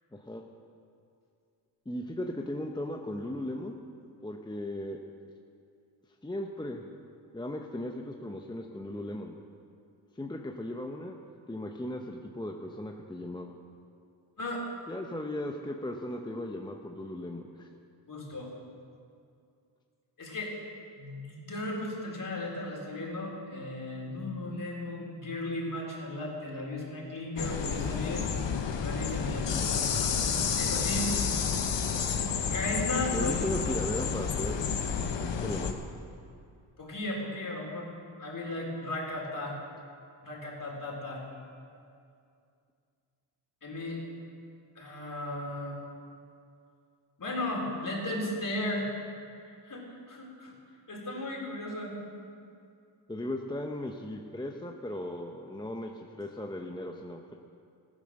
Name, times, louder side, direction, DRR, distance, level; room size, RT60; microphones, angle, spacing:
voice 1, 0.1-0.4 1.9-3.8 4.2-5.0 6.2-6.9 7.3-9.3 10.2-11.2 11.5-13.5 14.9-17.7 33.1-34.9 35.4-35.8 53.1-57.3, left 1 dB, 10° left, 2 dB, 0.8 m, -37 dB
voice 2, 18.1-18.5 20.2-20.5 20.9-28.3 28.8-30.2 30.6-31.4 32.5-33.7 36.8-37.9 38.2-39.6 40.2-41.2 43.6-44.0 44.8-45.8 47.2-48.9 49.6-50.5 50.9-52.0, left 1 dB, 45° left, -2 dB, 3.9 m, -35 dB
sound 1, 27.4-35.7, left 6 dB, 70° left, 1.2 m, -30 dB
14.5 x 10.5 x 6.5 m, 2.4 s
cardioid pair, 85°, 45 cm